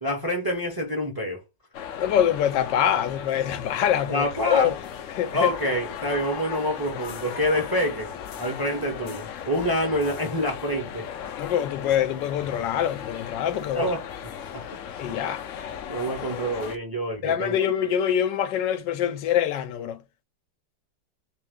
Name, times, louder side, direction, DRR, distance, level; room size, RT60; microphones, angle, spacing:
voice 1, 0.0-1.4 4.1-4.7 5.3-8.1 8.4-11.0 13.7-14.0 14.5-14.6 15.9-17.6, equal, 20° right, 0.6 m, -26 dB
sound 1, 1.7-16.8, left 8 dB, 70° left, 0.7 m, -37 dB
voice 2, 2.0-4.7 5.1-5.5 11.4-13.9 15.0-15.4 17.2-20.0, left 10 dB, 85° left, 1.3 m, -24 dB
3.3 x 3.1 x 3.6 m
omnidirectional pair, 1.9 m